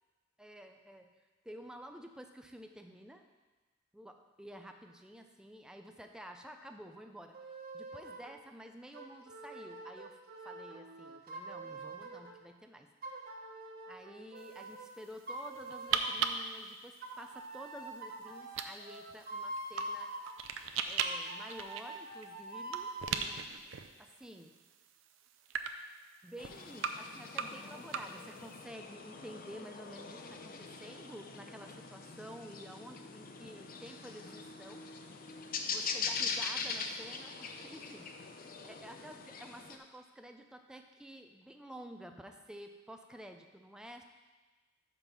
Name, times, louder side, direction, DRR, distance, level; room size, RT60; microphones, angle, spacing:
voice 1, 0.4-1.1 1.4-3.2 3.9-7.4 7.7-12.9 13.8-20.1 20.9-24.5 26.2-34.9 35.7-38.3 38.6-44.0, equal, 5° right, 4 dB, 0.5 m, -51 dB
sound 1, 7.3-8.4 8.9-12.4 13.0-14.9 15.3-16.3 17.0-20.3 21.0-23.2, right 2 dB, 50° right, 0.8 m, -45 dB
sound 2, 14.4-28.6, right 6 dB, 70° right, 0.5 m, -41 dB
sound 3, 26.4-39.8, left 5 dB, 45° left, 0.6 m, -42 dB
6.2 x 5.2 x 5.7 m, 1.2 s
head